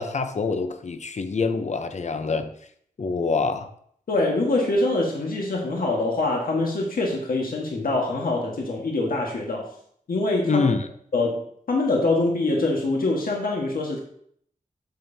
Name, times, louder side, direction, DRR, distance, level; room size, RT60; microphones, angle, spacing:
voice 1, 0.0-2.5 3.0-3.7 10.4-10.9, left 4 dB, 55° left, 9 dB, 0.7 m, -25 dB
voice 2, 4.1-9.7 10.1-10.7 11.1-14.0, left 2 dB, 85° left, -1 dB, 1.5 m, -24 dB
9.1 x 7.1 x 2.8 m, 0.65 s
wide cardioid pair, 100°, 14 cm